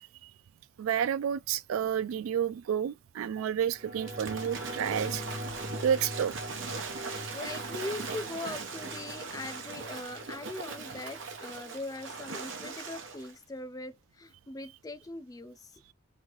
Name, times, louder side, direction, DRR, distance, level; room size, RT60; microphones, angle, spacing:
voice 1, 0.8-5.2 5.8-6.4, right 9 dB, 85° right, 0.3 m, -30 dB
sound 1, 3.7-12.7 13.1-13.2, equal, 45° right, 1.7 m, -43 dB
Waves surf / Splash splatter, 4.1-13.3, right 4 dB, 65° right, 0.8 m, -40 dB
voice 2, 6.9-15.9, left 2 dB, 20° left, 0.4 m, -41 dB
3.1 x 2.7 x 3.7 m
head